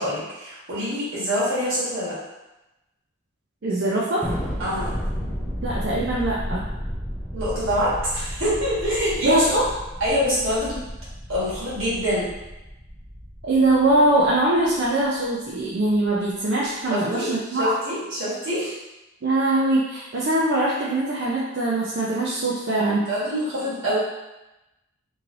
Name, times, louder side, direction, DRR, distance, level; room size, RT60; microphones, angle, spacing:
voice 1, 0.0-2.2 4.6-4.9 7.3-9.5 10.0-10.8 11.3-12.3 16.9-18.7 22.7-24.0, equal, 75° right, -9 dB, 1.4 m, -25 dB
voice 2, 3.6-4.3 5.6-6.6 9.2-9.6 13.4-17.7 19.2-23.0, right 2 dB, 55° right, -5 dB, 0.4 m, -22 dB
Thunder, 4.2-14.9, equal, 10° left, 0.4 m, -33 dB
3.0 x 2.7 x 2.6 m, 0.98 s
head